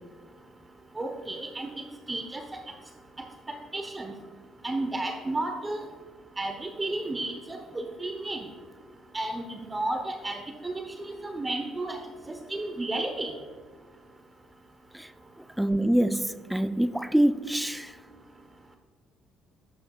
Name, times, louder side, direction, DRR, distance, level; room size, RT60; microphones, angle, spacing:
voice 1, 1.0-1.7 2.1-2.4 3.2-4.1 4.6-5.8 6.4-8.5 9.1-12.0 12.5-13.3, right 2 dB, 20° right, 5 dB, 0.9 m, -33 dB
voice 2, 15.6-18.0, right 1 dB, 5° right, 12 dB, 0.4 m, -25 dB
11.5 x 8.3 x 2.4 m, 1.5 s
supercardioid pair, 70°, 0 cm